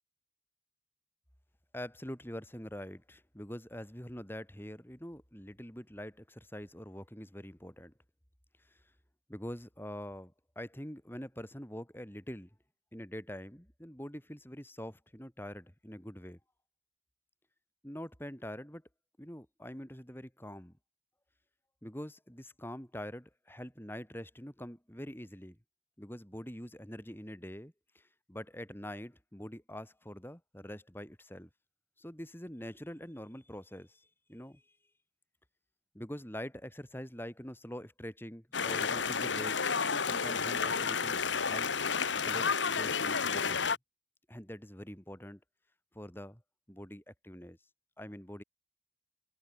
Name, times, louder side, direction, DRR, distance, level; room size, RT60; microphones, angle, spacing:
voice 1, 1.7-7.9 8.7-8.8 9.3-12.5 12.9-16.4 17.8-18.8 19.2-20.8 21.8-25.6 26.0-31.5 32.0-34.6 35.9-41.7 42.1-43.8 44.3-45.4 45.9-46.4 46.7-47.6 48.0-48.4, equal, 10° left, 5.4 m, -45 dB
sound 1, 38.5-43.8, left 5 dB, 85° left, 1.7 m, -31 dB
head